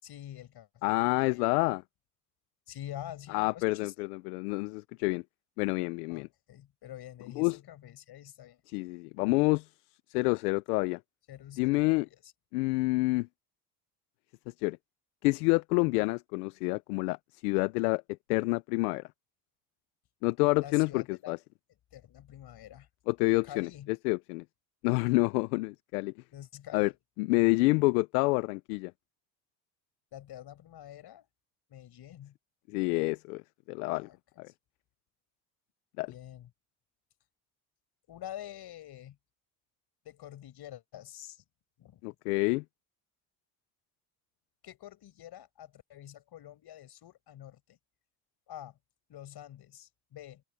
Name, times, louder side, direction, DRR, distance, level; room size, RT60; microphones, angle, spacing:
voice 1, 0.0-1.5 2.7-4.1 6.1-8.6 11.3-12.3 20.6-21.3 21.9-22.9 23.4-23.9 26.3-27.0 30.1-31.3 31.7-32.4 33.9-34.2 36.1-36.5 38.1-39.2 40.0-41.4 41.8-42.0 44.6-47.8 48.5-48.8 49.1-50.4, left 12 dB, 60° left, 5.6 m, -47 dB
voice 2, 0.8-1.8 3.3-5.2 5.6-6.3 7.4-7.6 8.7-9.7 10.1-11.0 11.6-12.1 12.5-13.3 14.6-14.8 15.2-17.2 17.4-18.0 18.3-19.1 20.2-21.4 23.1-23.7 24.0-24.4 24.8-26.1 26.7-26.9 27.2-28.9 32.7-34.1 34.4-34.5 36.0-36.1 42.0-42.6, left 25 dB, 90° left, 0.7 m, -28 dB
open air
supercardioid pair, 70°, 44 cm